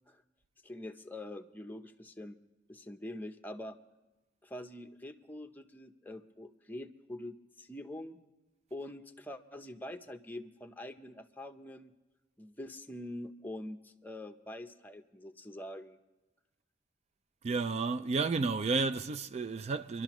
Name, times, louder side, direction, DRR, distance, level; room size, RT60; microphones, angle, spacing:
voice 1, 0.6-2.4 2.7-3.8 4.4-8.2 8.7-11.9 12.4-16.0, left 1 dB, 10° left, 0.7 m, -45 dB
voice 2, 17.4-20.0, right 4 dB, 35° right, 0.3 m, -31 dB
25.5 x 11.5 x 3.0 m
head